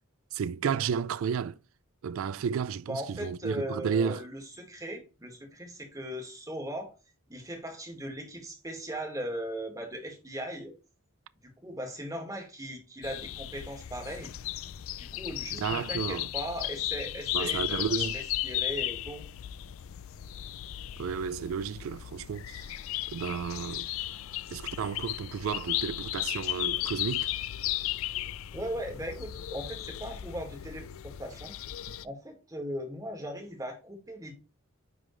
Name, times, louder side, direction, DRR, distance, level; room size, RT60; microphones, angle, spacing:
voice 1, 0.3-1.6 2.0-4.3 15.5-16.3 17.3-18.2 21.0-22.7 23.1-23.9 24.5-27.3, right 7 dB, 70° right, 0.3 m, -32 dB
voice 2, 2.9-6.9 7.3-10.7 11.4-14.3 15.0-19.2 28.5-31.5 32.0-34.3, equal, 15° right, 1.9 m, -38 dB
sound 1, 13.0-32.0, left 14 dB, 70° left, 0.3 m, -35 dB
9.8 x 3.8 x 3.1 m
head